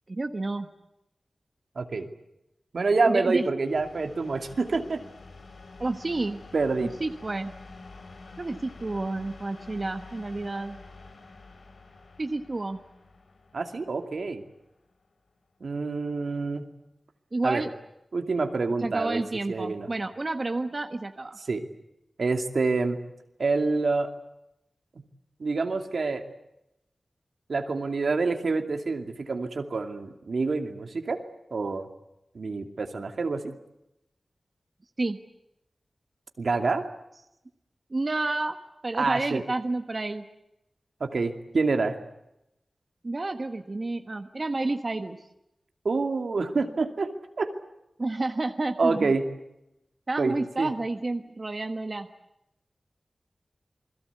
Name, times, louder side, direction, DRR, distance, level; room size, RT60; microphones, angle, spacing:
voice 1, 0.1-0.7 3.1-3.5 5.8-6.4 6.8-7.5 8.4-10.8 12.2-12.8 17.3-17.7 18.8-21.4 35.0-35.2 37.9-38.6 38.8-40.3 43.0-45.3 48.0-49.1 50.1-52.1, right 2 dB, 40° right, 7 dB, 1.3 m, -30 dB
voice 2, 1.8-2.1 2.7-5.0 6.5-6.9 13.5-14.4 15.6-16.7 17.4-17.6 18.1-19.2 19.5-19.9 21.4-21.6 22.2-23.0 23.4-24.1 25.0-25.1 25.4-26.2 27.5-31.2 31.5-31.9 32.3-33.5 36.4-36.9 38.9-39.4 41.0-42.0 45.8-47.5 48.8-49.2 50.2-50.7, right 3 dB, 75° right, 6 dB, 2.5 m, -27 dB
sound 1, 3.6-15.3, left 3 dB, 85° left, 3.7 m, -48 dB
28.5 x 21.5 x 8.3 m, 0.86 s
wide cardioid pair, 100°, 0 cm